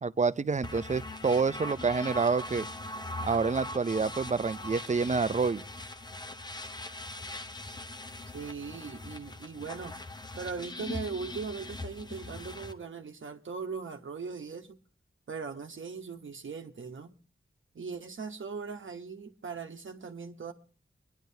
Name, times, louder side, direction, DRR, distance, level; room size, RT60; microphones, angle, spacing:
voice 1, 0.0-2.6 3.2-5.6, right 4 dB, 35° right, 0.5 m, -28 dB
sound 1, 0.6-12.7, left 2 dB, 20° left, 0.8 m, -41 dB
voice 2, 8.3-9.9 10.4-14.8 15.3-17.1 17.7-20.5, right 5 dB, 65° right, 1.0 m, -39 dB
24.0 x 10.5 x 2.7 m
wide cardioid pair, 90°, 21 cm